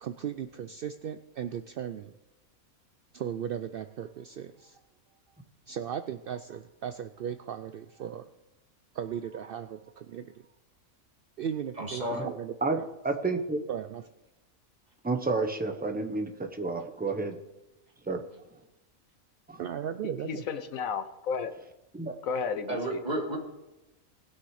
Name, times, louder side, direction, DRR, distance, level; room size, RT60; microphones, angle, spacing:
voice 1, 0.0-2.1 3.1-4.8 5.7-8.3 8.9-10.4 11.4-12.9 13.7-14.0 19.6-20.4, right 9 dB, 70° right, 10 dB, 0.5 m, -37 dB
voice 2, 11.8-12.2 22.7-23.4, right 1 dB, 30° right, 0 dB, 2.2 m, -32 dB
voice 3, 13.0-13.6 15.0-17.4 18.1-18.2 19.5-19.6 21.9-22.1, right 3 dB, 10° right, 5 dB, 0.8 m, -30 dB
voice 4, 20.3-21.5 22.2-23.0, left 6 dB, 70° left, 10 dB, 1.2 m, -33 dB
19.5 x 6.5 x 4.9 m, 0.97 s
omnidirectional pair, 1.5 m